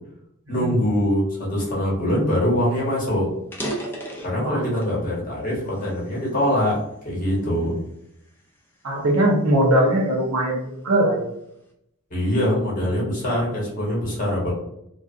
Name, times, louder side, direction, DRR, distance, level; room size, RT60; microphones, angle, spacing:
voice 1, 0.5-3.3 4.2-7.8 12.1-14.5, equal, 40° left, -5 dB, 1.1 m, -23 dB
sound 1, 2.7-2.9 3.4-5.0 5.5-6.8 7.4-7.6 8.3-10.3, right 1 dB, 10° left, 0.4 m, -35 dB
voice 2, 8.8-11.3, right 1 dB, 70° right, 0 dB, 0.7 m, -20 dB
2.4 x 2.3 x 2.5 m, 0.78 s
head